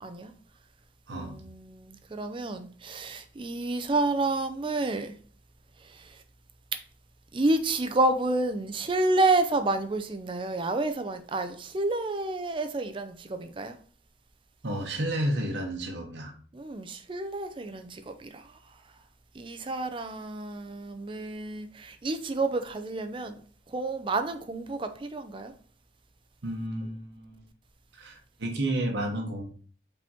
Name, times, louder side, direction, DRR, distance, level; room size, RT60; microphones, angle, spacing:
voice 1, 0.0-0.3 1.1-5.2 5.8-6.2 7.3-13.8 16.5-18.6 19.3-23.4 23.7-25.5, right 2 dB, 30° right, 0.4 m, -29 dB
voice 2, 14.6-16.3 26.4-27.4 28.0-29.4, right 1 dB, 80° right, 1.0 m, -31 dB
5.0 x 3.5 x 2.9 m
head